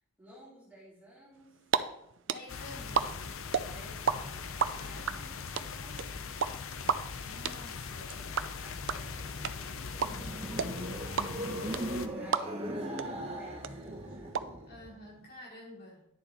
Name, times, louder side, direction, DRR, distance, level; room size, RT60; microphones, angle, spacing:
voice 1, 0.2-1.7 3.6-6.5 7.9-11.1 11.4-14.4, equal, 10° right, -8 dB, 3.2 m, -55 dB
sound 1, 1.4-1.8 2.0-4.1 4.4-12.7 13.0-13.1 13.3-14.4, right 7 dB, 65° right, 0.5 m, -30 dB
voice 2, 2.3-3.2 3.6-3.9 4.2-5.4 7.2-8.1 14.7-16.1, left 1 dB, 45° left, -4 dB, 3.2 m, -51 dB
sound 2, 2.5-12.1, left 5 dB, 80° left, 0.7 m, -41 dB
sound 3, 9.7-14.9, right 1 dB, 30° right, 1.4 m, -39 dB
10.5 x 6.9 x 4.2 m, 0.78 s
head